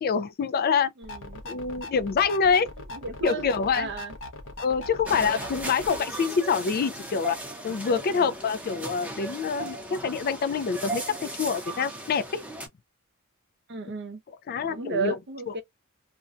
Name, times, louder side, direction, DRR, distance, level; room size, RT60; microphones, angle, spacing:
voice 1, 0.0-0.9 1.4-2.7 3.2-3.9 4.6-7.4 7.6-12.4 14.5-15.2 15.5-15.6, left 5 dB, 45° left, 0.3 m, -26 dB
sound 1, 1.0-6.0, left 2 dB, 60° left, 0.7 m, -40 dB
voice 2, 1.0-1.4 2.9-4.1 5.1-5.4 8.1-8.3 13.7-14.2 14.7-15.6, right 4 dB, 50° right, 0.6 m, -34 dB
sound 2, 5.1-12.7, right 2 dB, 5° right, 0.7 m, -37 dB
2.5 x 2.2 x 2.4 m
head